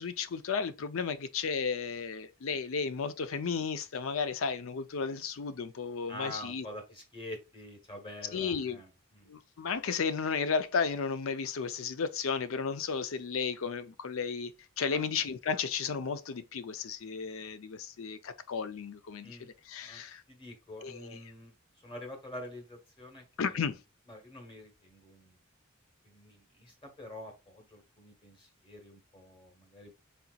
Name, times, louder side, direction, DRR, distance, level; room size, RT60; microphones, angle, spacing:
voice 1, 0.0-6.7 8.3-8.8 9.3-14.5 14.8-20.2 20.8-21.2 23.4-23.8, left 5 dB, 75° left, 0.5 m, -34 dB
voice 2, 6.1-9.3 14.9-15.0 19.2-19.5 19.8-20.0 20.3-21.5 21.8-23.6 24.1-25.4 26.0-29.9, left 1 dB, 25° left, 1.2 m, -46 dB
4.2 x 4.0 x 2.3 m
head